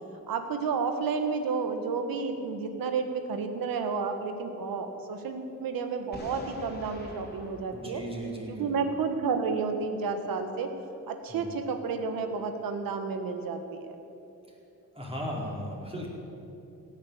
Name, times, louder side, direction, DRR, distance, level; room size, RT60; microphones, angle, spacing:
voice 1, 0.3-8.0 8.5-10.7 11.1-14.0, right 5 dB, 85° right, 7 dB, 1.5 m, -31 dB
Boom, 6.1-9.0, left 1 dB, 30° left, 3.1 m, -46 dB
voice 2, 7.7-8.9 11.3-11.6 14.5-14.6 14.9-16.1, equal, 15° right, -3 dB, 4.3 m, -37 dB
16.5 x 9.0 x 8.3 m, 2.9 s
cardioid pair, 75°, 34 cm